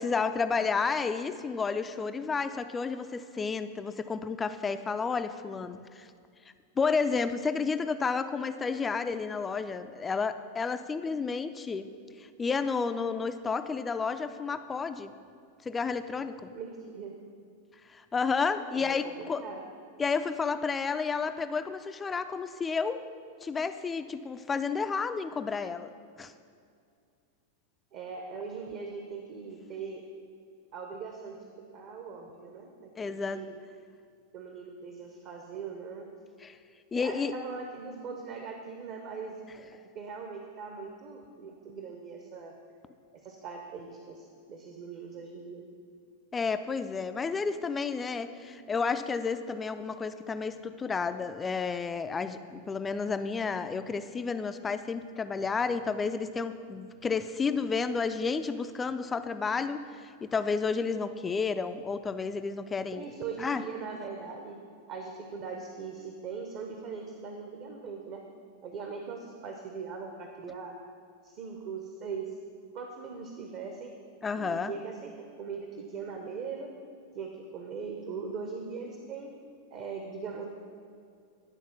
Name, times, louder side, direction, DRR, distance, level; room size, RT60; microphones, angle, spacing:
voice 1, 0.0-6.1 6.8-11.9 12.2-15.1 15.7-16.5 17.9-19.4 20.0-23.0 23.4-25.9 26.2-26.3 33.0-33.4 36.4-36.6 36.9-37.3 46.3-63.1 63.4-63.6 74.2-74.7, left 5 dB, 15° left, 10 dB, 0.3 m, -31 dB
voice 2, 16.5-17.2 18.7-19.7 27.9-30.0 30.7-33.6 34.3-36.1 36.9-39.4 39.9-42.5 43.1-45.7 62.9-64.6 64.9-68.2 68.6-70.7 71.2-72.4 72.7-73.9 74.4-76.7 77.1-79.3 79.7-80.5, right 5 dB, 40° right, 3 dB, 0.8 m, -40 dB
11.0 x 4.3 x 5.7 m, 2.3 s
figure-of-eight pair, 90°, 0 cm